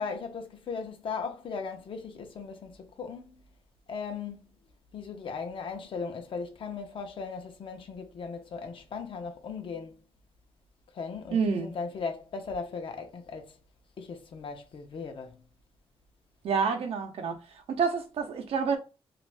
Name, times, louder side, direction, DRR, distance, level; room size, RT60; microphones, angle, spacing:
voice 1, 0.0-3.4 3.9-4.4 4.9-10.0 10.9-13.6 14.0-15.4, left 5 dB, 60° left, 0.7 m, -37 dB
voice 2, 11.3-11.7 16.4-17.4 17.7-18.8, right 5 dB, 80° right, 0.7 m, -28 dB
2.6 x 2.5 x 3.2 m
wide cardioid pair, 130°, 10 cm